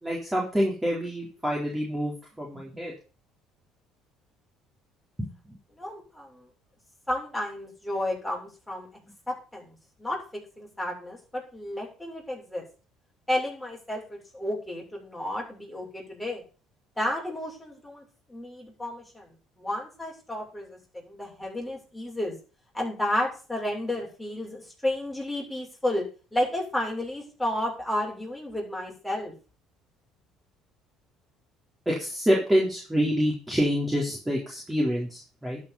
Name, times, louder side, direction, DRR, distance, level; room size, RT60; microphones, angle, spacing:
voice 1, 0.0-2.9 5.2-5.3 31.9-35.6, equal, 10° right, -3 dB, 4.0 m, -27 dB
voice 2, 5.8-6.5 7.1-8.9 9.3-9.7 10.0-10.2 10.6-12.7 13.3-16.4 17.0-19.3 19.6-22.4 22.7-26.0 26.3-29.3, left 1 dB, 5° left, -2 dB, 6.9 m, -32 dB
11.5 x 5.7 x 7.1 m, 0.37 s
supercardioid pair, 70°, 0 cm